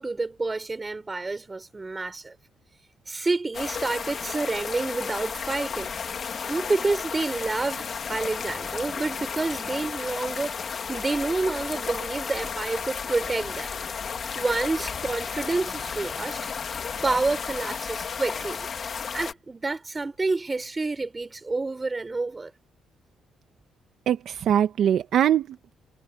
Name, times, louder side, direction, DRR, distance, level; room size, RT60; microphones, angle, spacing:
voice 1, 0.0-2.3 3.1-6.0 6.5-13.7 14.3-16.4 17.0-18.7 19.1-22.5, right 3 dB, 25° right, 5.7 m, -29 dB
sound 1, 3.5-19.3, left 6 dB, 50° left, 2.6 m, -33 dB
voice 2, 24.1-25.7, right 10 dB, 70° right, 1.2 m, -22 dB
cardioid pair, 90°, 0 cm